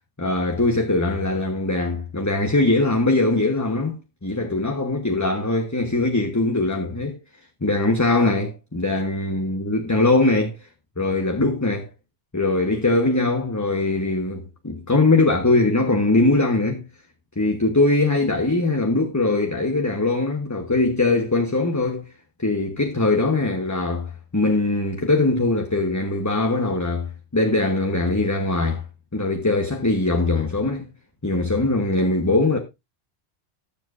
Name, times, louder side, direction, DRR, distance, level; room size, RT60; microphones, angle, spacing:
voice 1, 0.2-7.2 7.6-10.7 11.0-11.9 12.3-16.8 17.4-22.0 22.4-28.8 29.1-30.9 31.2-32.6, left 2 dB, 15° left, 1.0 m, -21 dB
18.5 x 7.4 x 2.5 m
omnidirectional pair, 1.2 m